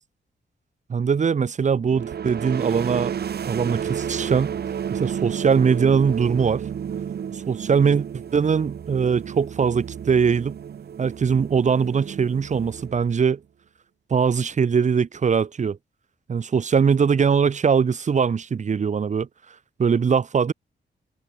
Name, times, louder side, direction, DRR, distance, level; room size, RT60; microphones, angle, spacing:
voice 1, 0.9-3.1 3.4-4.5 4.9-6.7 7.5-8.0 8.3-10.6 11.0-13.4 14.1-15.8 16.3-19.3 19.8-20.5, right 6 dB, 40° right, 1.3 m, -21 dB
sound 1, 1.9-13.4, right 8 dB, 60° right, 1.7 m, -32 dB
wide cardioid pair, 150°, 19 cm